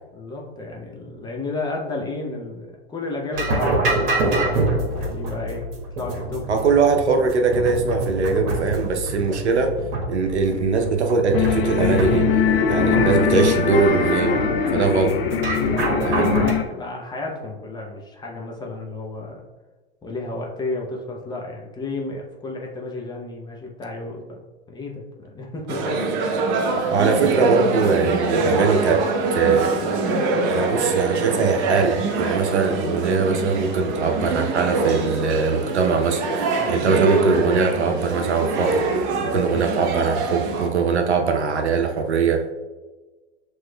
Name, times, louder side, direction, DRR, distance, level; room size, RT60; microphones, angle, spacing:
voice 1, 0.1-5.7 6.0-6.7 14.7-14.9 15.5-16.3 16.7-19.4 20.0-24.4 24.7-26.8 36.5-36.8, left 2 dB, 15° left, -1 dB, 0.6 m, -32 dB
sound 1, 3.3-16.5, right 2 dB, 60° right, 1.2 m, -26 dB
voice 2, 6.5-9.8 10.1-12.3 12.7-14.4 14.7-15.2 16.0-16.4 26.9-29.8 30.5-38.8 39.2-42.5, right 4 dB, 80° right, 4 dB, 0.7 m, -21 dB
sound 2, 11.3-16.6, left 7 dB, 60° left, 0.7 m, -22 dB
sound 3, 25.7-40.7, right 3 dB, 40° right, 0.7 m, -24 dB
7.5 x 3.1 x 2.2 m, 1.3 s
hypercardioid pair, 100°, 33 cm